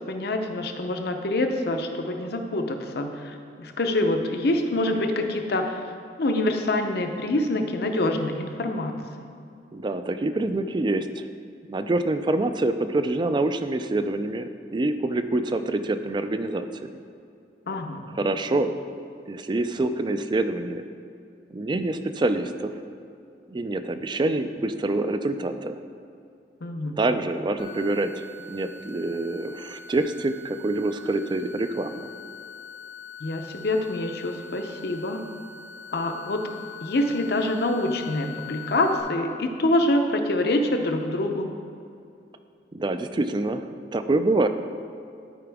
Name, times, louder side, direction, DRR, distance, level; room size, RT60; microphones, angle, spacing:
voice 1, 0.1-5.8 6.2-8.9 17.7-18.0 26.6-27.0 33.2-35.2 35.9-36.4 36.8-41.5, left 1 dB, 60° left, 5 dB, 0.7 m, -26 dB
voice 2, 9.7-11.3 11.7-17.0 18.1-18.7 19.3-20.8 21.5-22.7 23.5-25.8 27.0-32.1 42.7-43.7 43.9-44.5, right 2 dB, 25° right, 10 dB, 0.3 m, -26 dB
sound 1, 27.6-39.0, left 6 dB, 85° left, 1.8 m, -43 dB
12.0 x 4.8 x 3.5 m, 2.5 s
head